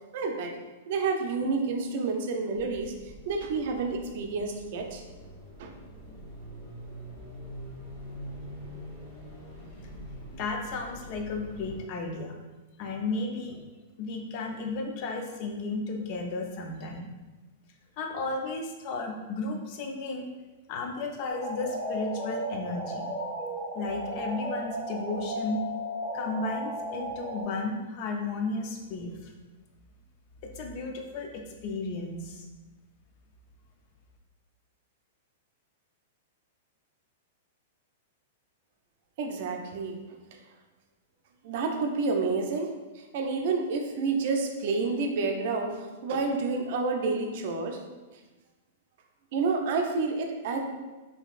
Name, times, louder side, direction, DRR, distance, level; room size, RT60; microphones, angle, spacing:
voice 1, 0.1-0.6 0.9-2.9 3.3-5.0 5.6-5.7 39.2-40.0 41.4-47.8 49.3-50.6, right 4 dB, 55° right, 3 dB, 0.5 m, -29 dB
sound 1, 2.5-11.8, equal, 15° left, 1.5 m, -44 dB
voice 2, 10.3-12.4 12.8-13.6 14.0-17.1 18.0-20.3 20.7-23.1 23.7-25.7 26.1-29.3 30.4-32.4, left 3 dB, 45° left, 2 dB, 0.5 m, -34 dB
sound 2, 21.3-27.4, equal, ahead, 1.5 m, -35 dB
3.9 x 2.7 x 2.4 m, 1.2 s
hypercardioid pair, 140°, 0 cm